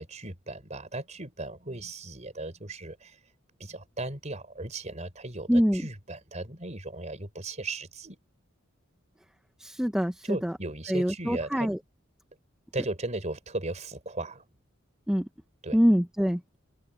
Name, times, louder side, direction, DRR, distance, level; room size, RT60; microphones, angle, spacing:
voice 1, 0.0-3.2 3.6-8.2 10.2-11.7 12.7-14.5 15.6-15.8, right 2 dB, 35° right, 4.3 m, -37 dB
voice 2, 5.5-5.8 9.6-10.5 10.9-11.8 15.1-15.3 15.7-16.6, equal, 5° right, 0.7 m, -25 dB
open air
head